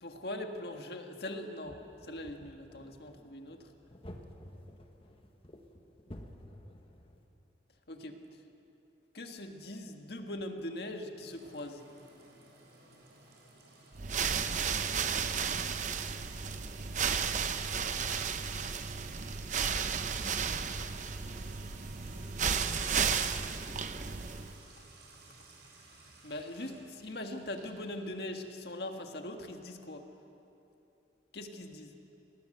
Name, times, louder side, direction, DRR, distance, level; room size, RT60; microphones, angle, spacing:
voice 1, 0.0-3.6 7.9-8.2 9.1-11.8 26.2-30.1 31.3-31.9, left 1 dB, 65° left, 4 dB, 1.7 m, -41 dB
sound 1, 1.6-7.2, left 1 dB, 30° left, 1.4 m, -51 dB
Sink (filling or washing) / Trickle dribble / Fill (with liquid), 11.2-28.6, right 3 dB, 75° right, 4.3 m, -57 dB
sound 2, 13.9-24.6, right 6 dB, 45° right, 0.7 m, -33 dB
voice 2, 20.7-21.5 22.0-22.9 23.3-24.5, equal, 10° right, -9 dB, 4.3 m, -59 dB
22.5 x 19.0 x 6.6 m, 2.9 s
head